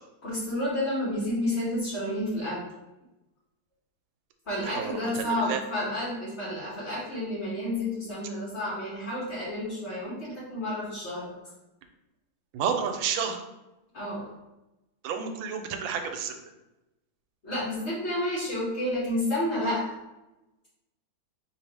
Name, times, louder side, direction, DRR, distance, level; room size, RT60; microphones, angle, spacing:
voice 1, 0.2-2.6 4.5-11.3 13.9-14.3 17.4-19.8, left 1 dB, 45° left, -6 dB, 1.1 m, -30 dB
voice 2, 4.7-5.6 12.5-13.4 15.0-16.3, right 7 dB, 85° right, 5 dB, 1.4 m, -30 dB
4.7 x 3.0 x 3.3 m, 0.99 s
omnidirectional pair, 2.1 m